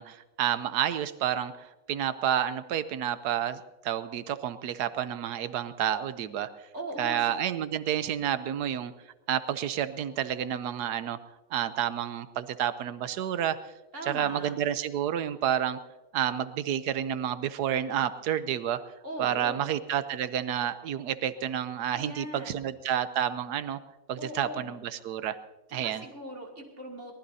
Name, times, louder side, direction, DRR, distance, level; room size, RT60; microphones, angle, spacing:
voice 1, 0.0-6.5 7.0-8.9 9.3-11.2 11.5-13.6 14.1-15.8 16.1-18.8 19.2-23.8 24.1-25.4 25.7-26.0, right 10 dB, 90° right, 12 dB, 1.3 m, -30 dB
voice 2, 6.7-7.3 13.9-14.5 19.0-19.7 21.9-22.6 24.2-24.7 25.7-27.2, right 1 dB, 45° right, -1 dB, 3.0 m, -40 dB
23.0 x 19.0 x 2.7 m, 1.1 s
omnidirectional pair, 1.7 m